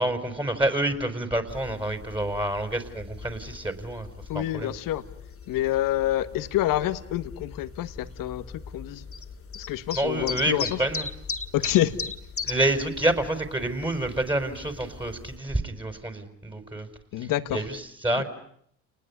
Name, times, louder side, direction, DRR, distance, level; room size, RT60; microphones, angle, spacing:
voice 1, 0.0-4.1 4.3-4.7 9.9-11.1 12.4-16.9 17.2-18.2, right 1 dB, 15° right, 8 dB, 5.0 m, -28 dB
sound 1, 1.5-15.4, left 5 dB, 40° left, 2.5 m, -39 dB
voice 2, 4.3-5.0 5.5-9.0 9.5-10.6 11.5-12.0 17.1-17.6 18.2-18.3, left 14 dB, 75° left, 11 dB, 1.7 m, -27 dB
29.5 x 20.5 x 9.7 m, 0.69 s
supercardioid pair, 60°, 34 cm